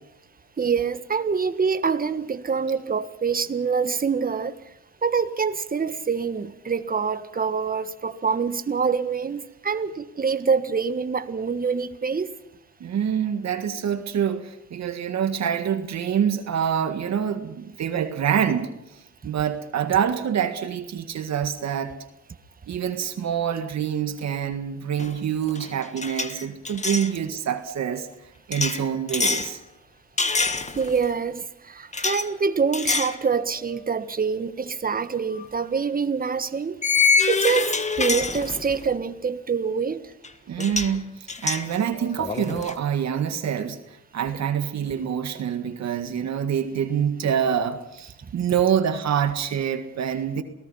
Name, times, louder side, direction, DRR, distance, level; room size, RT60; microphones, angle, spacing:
voice 1, 0.6-4.6 5.0-12.3 30.7-36.8 37.3-40.1 44.9-45.0, right 5 dB, 30° right, 1.4 m, -25 dB
voice 2, 12.8-18.7 19.2-21.9 22.7-28.1 28.5-29.6 40.5-43.8 44.1-50.4, right 8 dB, 60° right, 1.8 m, -26 dB
sound 1, 25.0-25.2 25.5-27.1 28.5-29.5 30.2-31.0 31.9-32.3 32.7-33.2 33.6-33.8 35.3-35.4 36.8-38.9 40.2-40.3 40.6-41.0 41.3-42.8, left 4 dB, 25° left, 1.5 m, -25 dB
28.0 x 18.0 x 5.7 m
cardioid pair, 90°, 30 cm